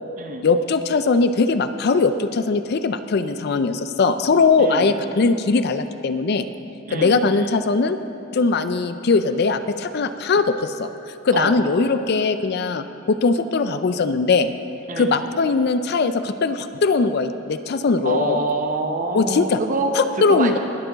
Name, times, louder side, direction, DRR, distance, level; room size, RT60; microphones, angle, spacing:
voice 1, 0.4-6.5 6.9-8.0 8.3-10.9 11.2-14.5 15.0-18.4 19.1-19.6 19.9-20.6, left 4 dB, 50° left, 10 dB, 0.4 m, -20 dB
voice 2, 4.6-5.0 6.9-7.2 11.3-11.6 14.9-15.1 18.0-20.6, right 2 dB, 40° right, 4 dB, 0.8 m, -26 dB
20.0 x 6.9 x 3.9 m, 2.9 s
head